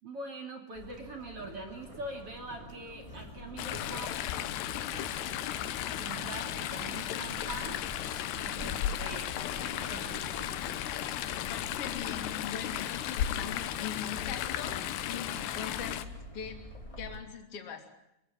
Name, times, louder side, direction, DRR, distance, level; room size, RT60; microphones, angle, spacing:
voice 1, 0.0-4.1 5.8-7.8 8.3-10.5, right 2 dB, 35° right, 3 dB, 3.4 m, -43 dB
sound 1, 0.7-17.2, left 1 dB, 10° left, 2.6 m, -49 dB
sound 2, 1.4-15.9, right 5 dB, 70° right, 1.2 m, -54 dB
Chatter / Stream, 3.6-16.0, left 11 dB, 75° left, 3.0 m, -35 dB
voice 2, 11.3-16.0 16.3-17.8, left 7 dB, 35° left, 4 dB, 3.4 m, -41 dB
25.0 x 16.5 x 9.4 m, 0.86 s
omnidirectional pair, 5.2 m